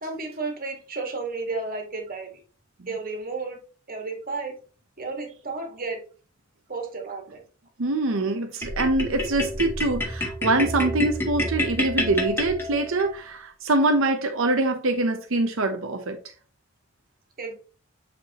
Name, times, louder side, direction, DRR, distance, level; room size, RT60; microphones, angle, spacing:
voice 1, 0.0-2.3 2.9-3.6 3.9-4.6 5.0-6.0 6.7-7.4 17.4-17.5, right 3 dB, 45° right, 1.7 m, -32 dB
voice 2, 7.8-16.2, right 2 dB, 65° right, 0.7 m, -24 dB
sound 1, 8.6-13.1, left 1 dB, 10° left, 1.5 m, -28 dB
8.9 x 4.6 x 2.9 m
head